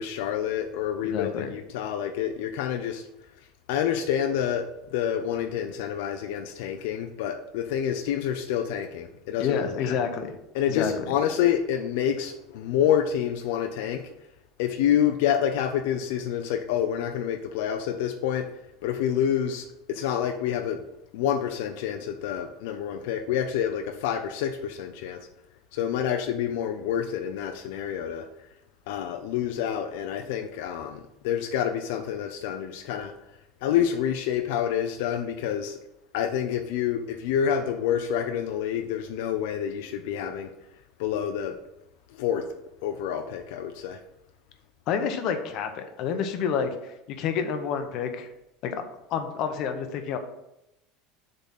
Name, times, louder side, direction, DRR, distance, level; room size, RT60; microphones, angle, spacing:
voice 1, 0.0-3.0 3.7-10.0 10.5-14.0 14.6-18.5 18.8-20.8 21.1-25.3 25.7-28.3 28.9-33.1 33.6-35.8 36.1-40.5 41.0-41.6 42.1-42.5 42.8-44.0, left 9 dB, 70° left, 6 dB, 0.6 m, -28 dB
voice 2, 1.0-1.5 9.4-10.4 10.7-10.9 44.9-48.3 48.6-48.8 49.1-50.2, left 7 dB, 45° left, 7 dB, 0.8 m, -29 dB
7.1 x 4.0 x 5.8 m, 0.89 s
cardioid pair, 170°, 0 cm